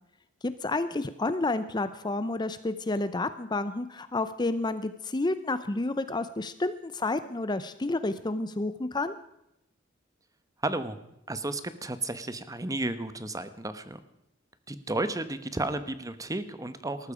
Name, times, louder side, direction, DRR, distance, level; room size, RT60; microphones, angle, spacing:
voice 1, 0.4-9.1, left 2 dB, 20° left, 12 dB, 0.6 m, -30 dB
voice 2, 10.6-11.0 11.3-14.0 14.7-17.1, right 2 dB, 20° right, 12 dB, 1.0 m, -33 dB
19.5 x 14.0 x 5.0 m, 0.82 s
head